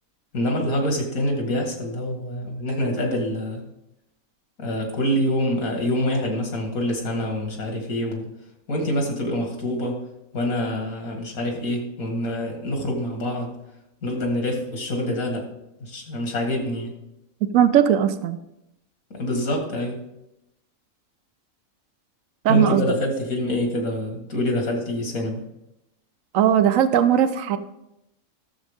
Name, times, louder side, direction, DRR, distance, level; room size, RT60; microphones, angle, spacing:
voice 1, 0.3-3.7 4.6-8.3 8.7-10.0 10.3-13.5 14.0-15.5 15.8-16.9 19.1-20.0 22.5-25.4, left 1 dB, 80° left, 2 dB, 2.4 m, -26 dB
voice 2, 17.5-18.4 22.4-22.8 26.3-27.6, right 9 dB, 70° right, 11 dB, 1.1 m, -18 dB
12.5 x 7.2 x 3.6 m, 0.87 s
omnidirectional pair, 1.4 m